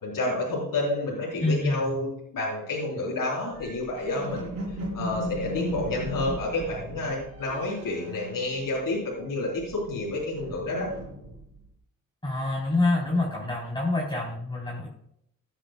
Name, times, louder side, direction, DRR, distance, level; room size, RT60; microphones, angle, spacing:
voice 1, 0.0-10.9, left 2 dB, 75° left, -6 dB, 4.0 m, -30 dB
voice 2, 1.4-2.1 12.2-14.9, left 2 dB, 15° left, -5 dB, 3.7 m, -27 dB
sound 1, 3.5-9.1 9.4-11.7, equal, 85° right, 3.6 m, -37 dB
17.0 x 8.9 x 2.3 m, 0.72 s
cardioid pair, 55°, 34 cm